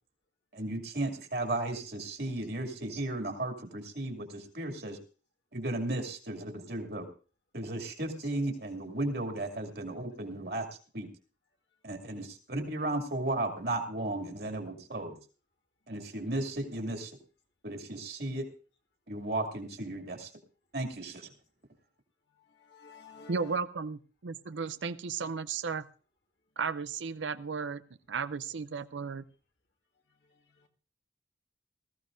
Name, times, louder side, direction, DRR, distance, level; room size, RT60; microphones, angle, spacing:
voice 1, 0.5-5.0 5.5-7.1 7.5-10.7 10.9-11.1 11.8-15.2 15.9-17.1 17.6-18.4 19.1-20.3 20.7-21.3, right 2 dB, 55° right, 2.6 m, -35 dB
voice 2, 22.4-23.6 30.2-30.7, left 4 dB, 70° left, 1.9 m, -52 dB
voice 3, 23.3-25.9 26.6-27.8 28.1-29.2, right 5 dB, 80° right, 0.6 m, -34 dB
19.5 x 14.5 x 2.6 m
head